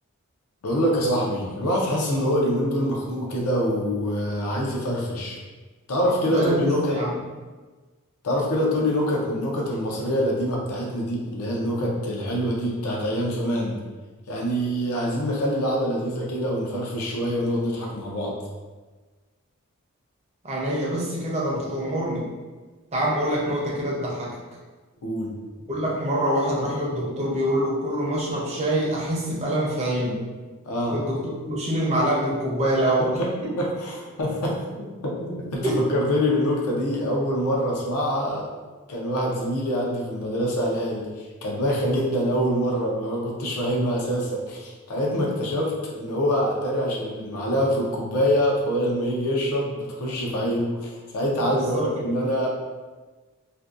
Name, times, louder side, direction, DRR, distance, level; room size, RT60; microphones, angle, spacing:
voice 1, 0.6-5.4 5.9-7.0 8.2-13.8 14.3-18.3 25.0-25.3 30.6-31.0 33.2-33.3 33.6-38.5 38.9-52.5, equal, 80° left, -2 dB, 0.5 m, -25 dB
voice 2, 6.3-6.6 7.0-7.1 20.4-22.3 22.9-24.4 25.7-30.2 30.9-33.2 35.6-35.8 51.5-51.9, right 1 dB, 30° right, -5 dB, 0.5 m, -25 dB
2.5 x 2.2 x 2.4 m, 1.3 s
head